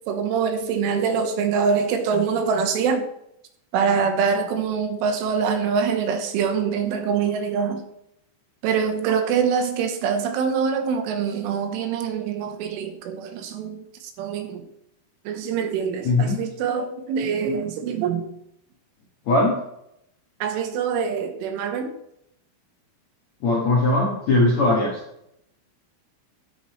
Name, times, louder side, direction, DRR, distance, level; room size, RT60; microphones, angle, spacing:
voice 1, 0.1-3.1 3.7-7.8 8.6-14.6 15.3-18.3 20.4-21.9, right 6 dB, 75° right, 3.5 m, -24 dB
voice 2, 16.0-16.4 19.3-19.6 23.4-25.0, left 2 dB, 65° left, 1.7 m, -19 dB
12.5 x 9.6 x 3.2 m
omnidirectional pair, 5.9 m